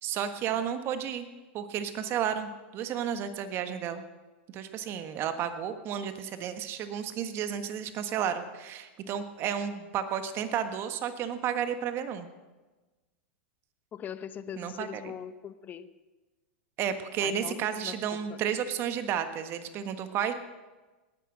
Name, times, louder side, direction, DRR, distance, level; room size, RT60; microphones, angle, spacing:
voice 1, 0.0-1.3 1.5-4.0 4.5-12.3 14.6-15.1 16.8-20.3, right 8 dB, 40° right, 9 dB, 1.4 m, -32 dB
voice 2, 13.9-15.9 17.2-18.4, left 8 dB, 30° left, 13 dB, 0.9 m, -41 dB
18.5 x 10.5 x 6.3 m, 1.2 s
hypercardioid pair, 105°, 6 cm